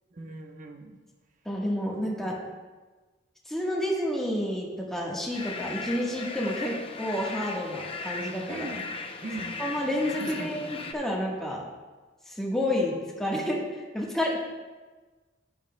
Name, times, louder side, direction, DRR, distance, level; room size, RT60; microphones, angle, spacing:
voice 1, 0.1-1.0 8.5-8.9 9.2-9.6 10.2-10.6, right 2 dB, 45° right, 3 dB, 0.9 m, -39 dB
voice 2, 1.4-2.3 3.5-8.7 9.6-10.7 10.9-11.6 12.3-13.6 13.9-14.4, left 1 dB, ahead, -4 dB, 1.3 m, -29 dB
sound 1, 5.3-10.9, left 4 dB, 30° left, 0.6 m, -37 dB
11.0 x 9.7 x 2.2 m, 1.3 s
head